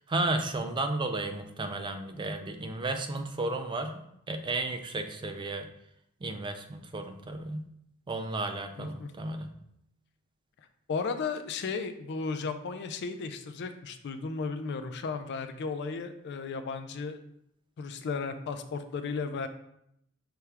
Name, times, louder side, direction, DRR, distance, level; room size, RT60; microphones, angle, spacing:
voice 1, 0.1-3.9 4.3-5.7 6.2-7.6 8.1-9.5, right 2 dB, 20° right, 6 dB, 0.3 m, -33 dB
voice 2, 8.8-9.1 10.9-17.2 17.8-19.5, left 4 dB, 55° left, 9 dB, 0.4 m, -34 dB
5.7 x 2.3 x 3.3 m, 0.76 s
head